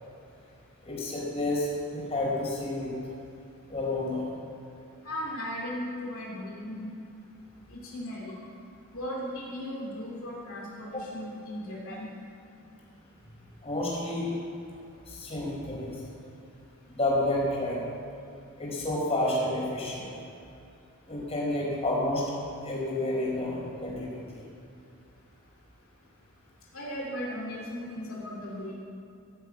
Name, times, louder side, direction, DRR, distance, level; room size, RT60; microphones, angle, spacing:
voice 1, 0.9-2.9 3.7-4.2 10.9-11.0 13.6-14.3 15.1-15.9 16.9-17.8 18.6-20.1 21.1-22.2 22.6-24.1, left 1 dB, 30° left, -4 dB, 4.4 m, -30 dB
voice 2, 5.0-6.9 7.7-8.4 8.9-12.1 26.7-28.7, equal, 70° left, -4 dB, 2.7 m, -37 dB
16.5 x 8.1 x 8.4 m, 2.6 s
head